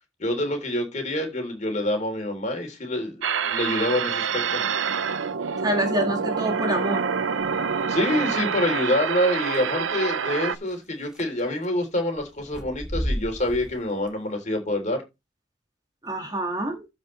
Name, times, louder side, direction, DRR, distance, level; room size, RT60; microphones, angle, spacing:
voice 1, 0.2-3.1 3.4-4.6 7.9-15.0, left 1 dB, 40° left, 3.3 m, -26 dB
sound 1, 3.2-10.6, right 6 dB, 90° right, 0.7 m, -26 dB
voice 2, 5.6-7.1 16.0-16.9, right 1 dB, 20° right, 1.9 m, -26 dB
sound 2, 7.4-7.8 9.5-9.6 10.7-10.8 11.0-11.7 12.2-14.1, equal, 5° right, 1.0 m, -32 dB
15.0 x 5.2 x 3.2 m
head